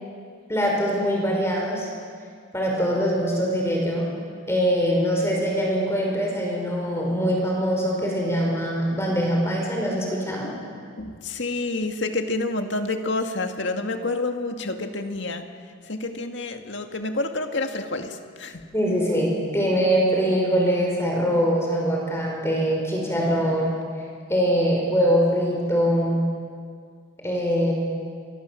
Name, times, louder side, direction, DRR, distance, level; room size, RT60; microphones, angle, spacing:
voice 1, 0.5-1.9 2.5-4.1 4.5-10.5 18.7-23.8 24.3-26.3 27.2-27.7, equal, 15° left, -1 dB, 5.4 m, -23 dB
voice 2, 11.0-15.5 15.8-18.7, left 2 dB, 65° left, 5 dB, 2.2 m, -28 dB
30.0 x 25.5 x 7.6 m, 2.1 s
head